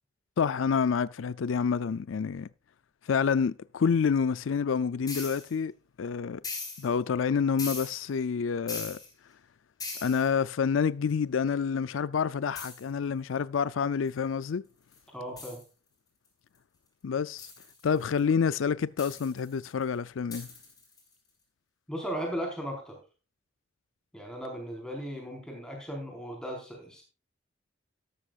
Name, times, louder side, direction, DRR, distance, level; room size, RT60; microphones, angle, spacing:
voice 1, 0.4-2.5 3.1-5.7 6.0-6.4 6.8-9.0 10.0-14.6 17.0-17.5 17.8-20.5, left 6 dB, 85° left, 0.4 m, -28 dB
sound 1, 5.1-5.5 6.4-6.9 7.6-8.1 8.7-9.1 9.8-10.3 12.5-12.8 14.1-14.2 14.9-15.0 15.4-15.6 17.4-18.2 19.0-19.8 20.3-21.1, left 4 dB, 20° left, 4.4 m, -40 dB
voice 2, 15.1-15.6 21.9-23.0 24.1-27.0, equal, 5° left, 4.5 m, -37 dB
13.0 x 12.5 x 2.4 m
head